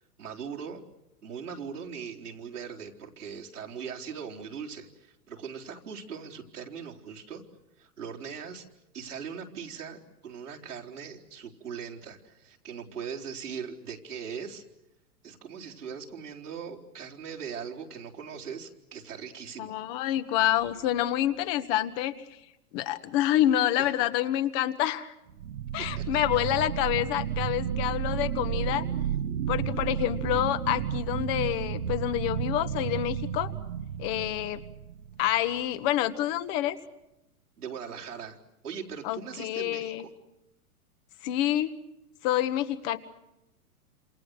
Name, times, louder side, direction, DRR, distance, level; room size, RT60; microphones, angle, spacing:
voice 1, 0.2-0.8 1.2-7.4 7.8-8.6 8.9-14.6 15.2-19.8 23.8-24.0 25.8-26.5 37.6-38.4 38.6-40.1, right 6 dB, 80° right, -2 dB, 4.3 m, -40 dB
voice 2, 19.6-22.1 22.7-25.1 25.7-28.8 29.5-33.5 34.0-34.6 35.2-36.8 39.0-40.1 41.2-41.7 42.2-43.0, left 13 dB, 40° left, 10 dB, 1.7 m, -27 dB
sound 1, 20.4-21.0 25.3-35.5, right 9 dB, 65° right, 1.6 m, -32 dB
28.0 x 28.0 x 6.4 m, 0.90 s
hypercardioid pair, 110°, 45 cm